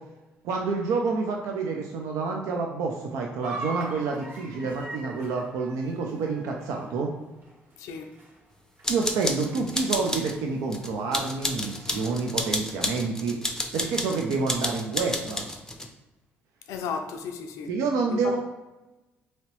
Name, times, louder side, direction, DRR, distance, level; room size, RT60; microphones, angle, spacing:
voice 1, 0.4-7.1 8.9-13.4 13.7-15.5 17.7-18.4, right 4 dB, 75° right, 0.4 m, -28 dB
sound 1, 3.4-8.5 8.8-9.1 9.4-9.6 10.2-10.3 11.3-12.9, right 2 dB, 35° right, 1.4 m, -42 dB
voice 2, 7.8-8.1 16.7-17.7 18.1-18.4, left 6 dB, 75° left, 0.4 m, -34 dB
sound 2, 8.8-10.4 10.7-15.9, left 1 dB, 10° left, 0.5 m, -31 dB
2.9 x 2.8 x 3.0 m
hypercardioid pair, 55°, 5 cm